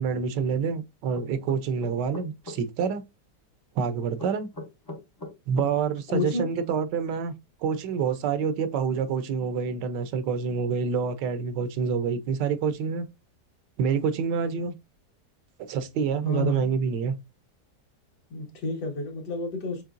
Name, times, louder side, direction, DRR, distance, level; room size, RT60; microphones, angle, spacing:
voice 1, 0.0-3.0 3.8-4.5 5.5-7.3 7.6-13.1 13.8-14.7 15.7-17.1, right 6 dB, 80° right, 1.3 m, -27 dB
sound 1, 1.1-2.6 4.2-5.7, left 2 dB, 30° left, 0.4 m, -39 dB
voice 2, 6.1-6.5 16.2-16.7 18.3-19.8, left 3 dB, 75° left, 2.3 m, -30 dB
6.7 x 3.2 x 2.5 m
omnidirectional pair, 1.8 m